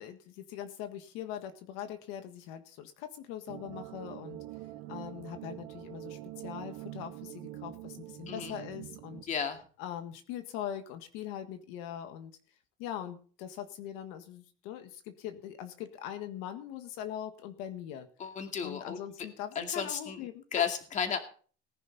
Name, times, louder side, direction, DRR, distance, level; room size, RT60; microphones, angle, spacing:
voice 1, 0.0-4.4 4.9-9.3 9.8-12.3 12.8-18.1 18.6-20.4, left 10 dB, 85° left, 8 dB, 1.7 m, -41 dB
sound 1, 3.5-9.2, right 16 dB, 90° right, 1.5 m, -45 dB
voice 2, 9.3-9.6 18.2-19.0 19.6-21.2, left 7 dB, 35° left, 5 dB, 2.3 m, -33 dB
19.0 x 10.5 x 4.1 m, 0.42 s
cardioid pair, 135°, 20 cm